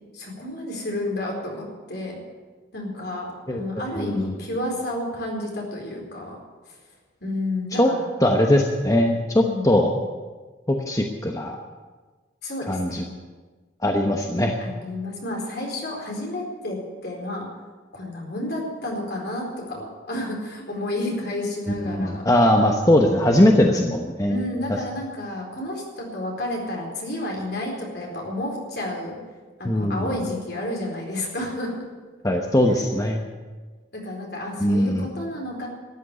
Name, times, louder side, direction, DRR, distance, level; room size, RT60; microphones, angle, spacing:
voice 1, 0.1-2.2 2.7-6.4 7.2-8.1 9.3-9.8 12.4-13.0 14.6-16.8 17.0-17.5 17.9-22.2 23.6-24.0 24.2-29.2 29.6-31.8 33.9-35.7, left 1 dB, 55° left, -1 dB, 4.3 m, -31 dB
voice 2, 4.0-4.3 7.7-7.9 8.2-9.9 10.7-11.6 12.7-13.0 13.8-14.6 21.7-24.4 29.6-30.1 32.2-33.3 34.6-35.1, left 1 dB, 20° left, 2 dB, 1.0 m, -20 dB
13.5 x 8.9 x 9.9 m, 1.3 s
head